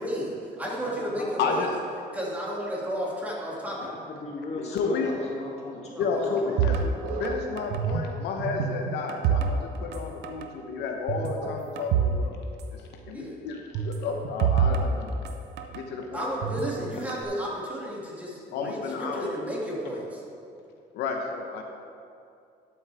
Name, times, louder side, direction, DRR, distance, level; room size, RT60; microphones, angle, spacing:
voice 1, 0.0-1.6 2.1-3.9 5.9-6.5 13.1-13.4 16.1-20.0, equal, 10° right, -5 dB, 2.3 m, -33 dB
voice 2, 0.8-1.6 3.6-6.5, left 2 dB, 40° left, -3 dB, 2.4 m, -37 dB
voice 3, 1.4-1.7 4.6-5.1 6.0-15.1 15.7-16.3 18.5-19.3 20.9-21.6, left 5 dB, 80° left, 2 dB, 0.9 m, -31 dB
sound 1, 6.6-8.1 8.4-10.0 10.2-10.5 11.1-12.2 12.5-12.6 13.8-15.8 16.4-17.2, right 7 dB, 85° right, 0.7 m, -27 dB
12.0 x 8.1 x 3.4 m, 2.5 s
cardioid pair, 110°, 17 cm